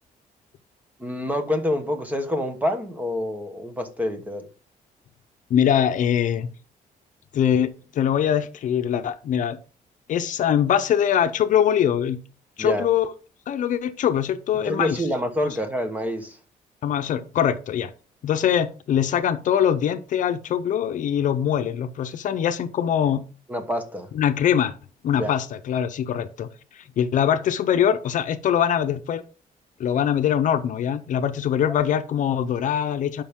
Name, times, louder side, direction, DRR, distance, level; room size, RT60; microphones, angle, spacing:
voice 1, 1.0-4.5 12.6-12.9 14.6-16.4 23.5-24.1 25.2-25.4 31.7-31.8, left 1 dB, 10° right, 1.2 m, -27 dB
voice 2, 5.5-6.5 7.3-9.6 10.1-12.2 12.6-13.1 13.5-15.0 15.4-15.6 16.8-17.9 18.2-23.2 24.1-24.7 25.0-29.2 29.8-33.2, left 9 dB, 60° left, 0.7 m, -23 dB
11.5 x 5.4 x 3.7 m
cardioid pair, 170°, 15 cm